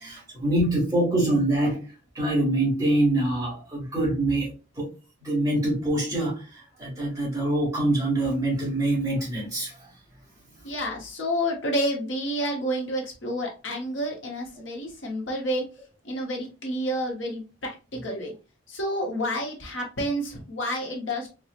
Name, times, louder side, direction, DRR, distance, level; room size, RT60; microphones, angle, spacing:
voice 1, 0.0-1.9 2.1-4.9 5.2-9.7, right 1 dB, 15° right, 1.7 m, -25 dB
voice 2, 10.6-15.7 16.0-18.3 18.7-21.3, equal, 75° left, 1.1 m, -29 dB
4.4 x 2.3 x 2.4 m
head